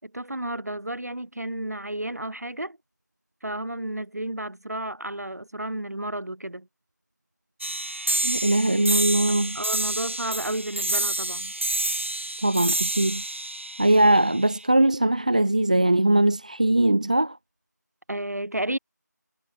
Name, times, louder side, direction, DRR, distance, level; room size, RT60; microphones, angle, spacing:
voice 1, 0.0-2.8 3.4-6.7 9.5-11.5 18.1-18.8, right 1 dB, 60° right, 5.3 m, -32 dB
sound 1, 7.6-14.6, right 2 dB, 40° right, 1.9 m, -28 dB
voice 2, 8.2-9.6 12.4-13.2 13.8-17.4, right 1 dB, 25° right, 0.8 m, -21 dB
figure-of-eight pair, 170°, 10 cm